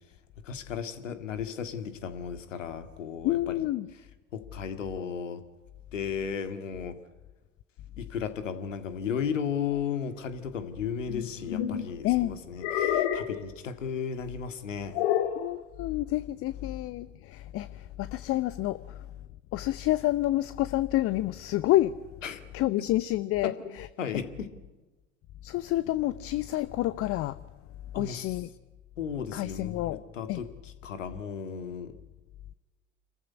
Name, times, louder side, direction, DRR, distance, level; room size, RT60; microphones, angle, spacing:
voice 1, 0.4-3.7 4.3-5.4 5.9-7.0 8.0-15.0 22.2-22.4 23.4-23.6 24.0-24.5 27.9-28.4 29.0-31.9, left 7 dB, 75° left, 10 dB, 2.0 m, -35 dB
voice 2, 3.2-3.9 12.0-12.4 15.4-19.1 19.5-22.0 22.5-23.9 25.4-27.4 27.9-28.5 29.3-30.0 30.3-30.4, left 15 dB, 35° left, 16 dB, 0.7 m, -28 dB
sound 1, 11.1-11.9 12.6-13.4 14.9-15.5, left 10 dB, 55° left, 2.0 m, -28 dB
26.5 x 14.5 x 9.7 m, 1.2 s
figure-of-eight pair, 70°, 38 cm